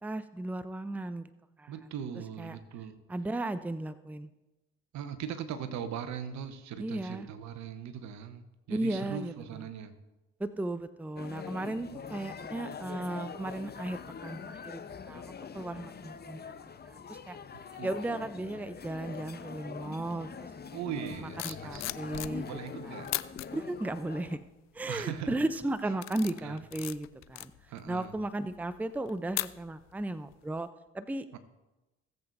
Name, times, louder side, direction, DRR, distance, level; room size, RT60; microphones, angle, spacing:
voice 1, 0.0-1.3 1.6-1.7 2.4-2.6 3.1-4.3 6.8-7.3 8.7-9.3 10.4-14.8 15.1-15.2 15.5-16.5 16.8-17.4 17.8-20.5 21.4-22.5 22.9-23.0 23.5-24.4 24.7-27.5 27.9-30.7 30.9-31.2, right 2 dB, 5° right, 13 dB, 0.6 m, -35 dB
voice 2, 1.7-3.0 4.9-9.9 11.9-12.2 17.5-17.9 20.7-23.3 24.9-25.4 26.4-26.6 27.7-28.1 31.3-31.4, right 8 dB, 65° right, 10 dB, 1.0 m, -40 dB
sound 1, 11.2-24.4, left 6 dB, 30° left, 0.8 m, -44 dB
sound 2, 21.1-22.7 23.0-23.5 24.1-24.5 24.9-25.3 25.7-30.0 30.3-30.6, left 16 dB, 60° left, 0.5 m, -39 dB
17.5 x 7.8 x 2.6 m, 1.0 s
hypercardioid pair, 50°, 30 cm